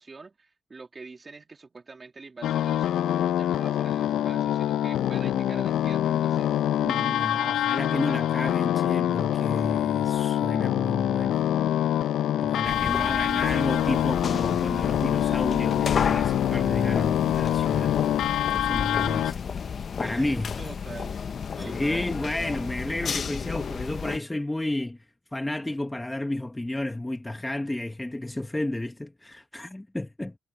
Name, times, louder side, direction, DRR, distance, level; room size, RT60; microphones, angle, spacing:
voice 1, 0.0-6.5 12.9-13.4 20.0-21.2 21.5-22.1, right 4 dB, 25° right, 2.6 m, -44 dB
sound 1, 2.4-19.3, left 11 dB, 75° left, 0.5 m, -25 dB
voice 2, 6.8-11.5 12.4-18.0 18.5-19.4 20.0-20.5 21.6-25.0 25.3-30.3, left 1 dB, 10° left, 1.3 m, -31 dB
sound 2, 12.6-24.2, left 6 dB, 40° left, 0.8 m, -32 dB
cardioid pair, 135°, 0 cm